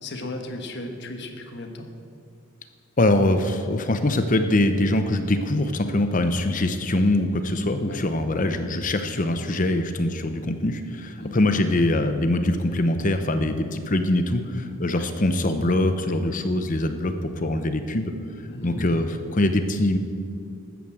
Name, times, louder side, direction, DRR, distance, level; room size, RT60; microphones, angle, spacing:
voice 1, 0.0-1.9 7.9-8.1 11.2-11.4 14.9-15.1 18.5-18.9, left 2 dB, 55° left, 5 dB, 1.3 m, -35 dB
voice 2, 3.0-18.1 18.6-20.0, left 1 dB, 35° left, 8 dB, 0.8 m, -23 dB
13.5 x 9.2 x 7.5 m, 2.5 s
head